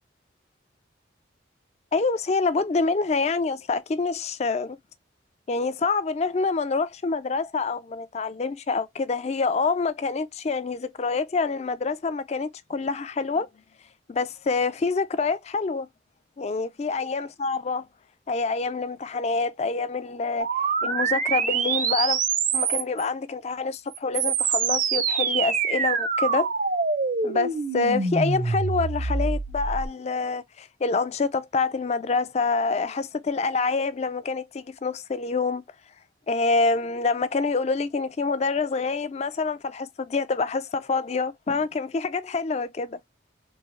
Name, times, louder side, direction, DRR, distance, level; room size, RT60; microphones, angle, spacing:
voice 1, 1.9-4.8 5.5-13.5 14.1-15.9 16.4-17.8 18.3-22.2 22.5-26.5 27.2-35.6 36.3-43.0, left 4 dB, 35° left, 0.3 m, -26 dB
sound 1, 20.4-23.0 23.9-29.9, right 5 dB, 40° right, 0.6 m, -25 dB
3.6 x 2.8 x 3.0 m
head